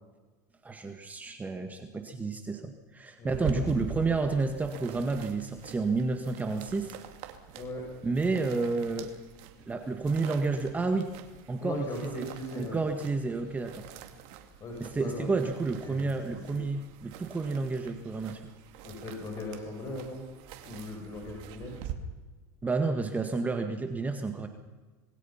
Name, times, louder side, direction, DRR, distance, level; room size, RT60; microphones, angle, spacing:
voice 1, 0.6-6.9 8.0-9.1 9.7-11.1 11.5-12.3 12.5-13.9 14.8-18.4 22.6-24.5, right 3 dB, 15° right, 6 dB, 1.8 m, -30 dB
voice 2, 3.2-4.1 7.6-7.8 11.6-12.8 14.6-15.3 15.8-16.6 18.8-20.2 20.6-21.8, left 1 dB, 35° left, 0 dB, 6.3 m, -39 dB
sound 1, 3.3-21.9, right 8 dB, 60° right, 2.5 m, -45 dB
26.0 x 21.0 x 5.8 m, 1.3 s
supercardioid pair, 120°, 10 cm